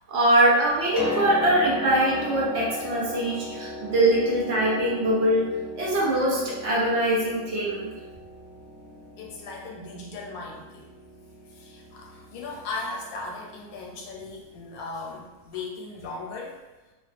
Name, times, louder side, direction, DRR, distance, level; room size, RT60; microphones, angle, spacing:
voice 1, 0.1-7.9, right 1 dB, 65° right, -4 dB, 0.8 m, -23 dB
Piano, 0.7-14.4 15.5-15.6, left 1 dB, 30° right, 0.8 m, -37 dB
voice 2, 9.2-10.9 11.5-16.6, left 3 dB, 85° left, -1 dB, 1.0 m, -37 dB
2.3 x 2.3 x 2.4 m, 1.1 s
omnidirectional pair, 1.4 m